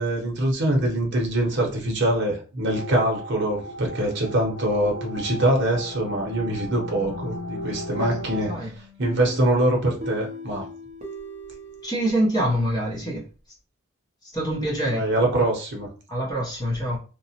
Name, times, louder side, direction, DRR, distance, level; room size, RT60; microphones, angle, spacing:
voice 1, 0.0-8.7 9.0-10.6 14.9-15.9, right 1 dB, 55° right, 0.8 m, -24 dB
sound 1, 2.7-8.6, equal, 75° left, 0.5 m, -36 dB
voice 2, 8.0-8.7 11.8-13.2 14.3-15.0 16.1-17.0, right 1 dB, 20° left, 0.7 m, -25 dB
sound 2, 8.0-12.7, left 1 dB, 30° right, 0.5 m, -40 dB
2.8 x 2.0 x 2.8 m
head